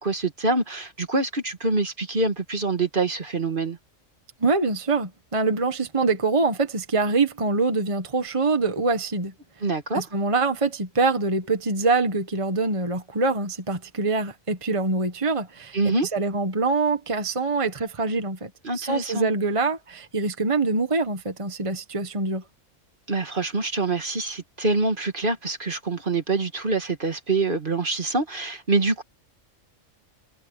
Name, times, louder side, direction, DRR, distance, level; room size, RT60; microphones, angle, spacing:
voice 1, 0.0-3.8 9.6-10.0 15.7-16.1 18.6-19.3 23.1-29.0, right 3 dB, 45° right, 1.9 m, -25 dB
voice 2, 4.4-9.3 9.9-22.4, right 3 dB, 25° right, 1.4 m, -24 dB
omnidirectional pair, 1.3 m